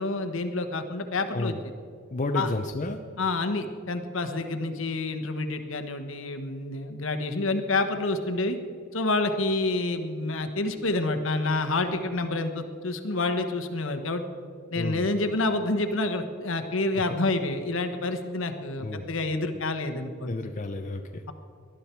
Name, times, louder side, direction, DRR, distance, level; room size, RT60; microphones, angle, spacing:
voice 1, 0.0-1.5 2.3-2.5 3.2-8.6 8.9-14.2 14.7-20.5, left 2 dB, 70° left, 7 dB, 1.2 m, -28 dB
voice 2, 1.3-1.6 2.1-3.0 14.7-15.1 16.9-17.1 18.8-19.1 20.3-21.3, left 2 dB, 35° left, 4 dB, 0.6 m, -31 dB
19.0 x 11.5 x 4.5 m, 2.3 s
head